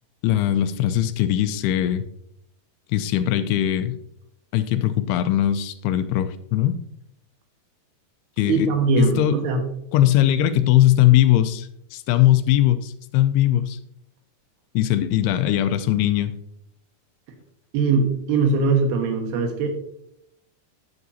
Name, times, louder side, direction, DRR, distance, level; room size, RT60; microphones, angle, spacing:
voice 1, 0.2-2.1 2.9-4.0 4.5-6.7 8.4-8.7 9.0-9.4 9.9-13.8 14.7-16.3, left 12 dB, 85° left, 10 dB, 2.6 m, -20 dB
voice 2, 8.5-9.6 17.7-19.7, right 4 dB, 80° right, 4 dB, 3.3 m, -21 dB
12.5 x 7.2 x 2.7 m, 0.75 s
omnidirectional pair, 4.7 m